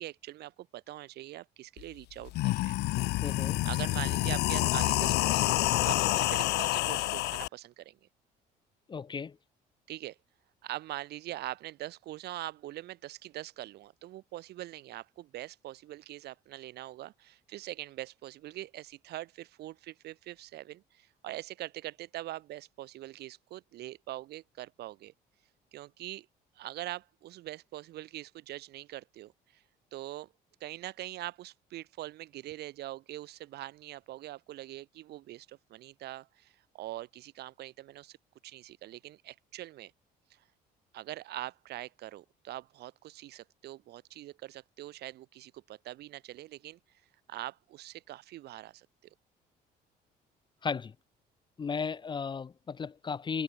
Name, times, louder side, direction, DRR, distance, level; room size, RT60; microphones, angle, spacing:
voice 1, 0.0-2.8 3.6-5.5 5.8-8.0 9.9-10.2 10.6-25.1 25.7-26.3 26.6-29.6 29.9-30.3 30.6-38.2 38.4-39.9 40.3-40.4 40.9-46.8 47.3-48.9, right 15 dB, 75° right, 4.4 m, -43 dB
sound 1, 1.8-1.9 2.2-7.5, left 18 dB, 75° left, 0.5 m, -28 dB
voice 2, 3.2-3.6 8.9-9.3 50.6-50.9 51.6-53.4, left 5 dB, 25° left, 0.7 m, -35 dB
cardioid pair, 110°, 17 cm